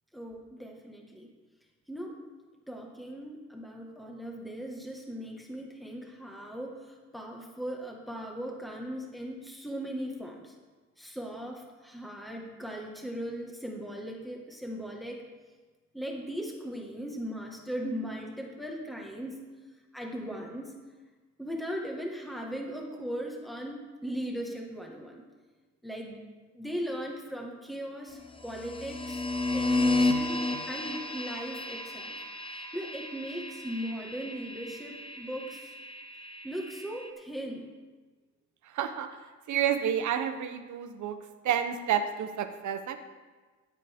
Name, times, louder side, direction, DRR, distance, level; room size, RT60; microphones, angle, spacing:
voice 1, 0.1-1.3 1.9-2.2 2.7-10.5 11.0-15.2 15.9-19.5 19.9-20.7 21.4-25.2 25.8-26.2 26.5-29.2 29.5-30.4 30.7-32.2 32.7-35.7 36.4-37.7, equal, ahead, 0 dB, 1.8 m, -38 dB
sound 1, 28.3-37.1, left 2 dB, 15° left, 1.0 m, -32 dB
voice 2, 38.6-39.1 39.5-41.2 41.4-43.0, right 9 dB, 70° right, 8 dB, 1.1 m, -29 dB
15.5 x 8.3 x 3.7 m, 1.3 s
cardioid pair, 90°, 30 cm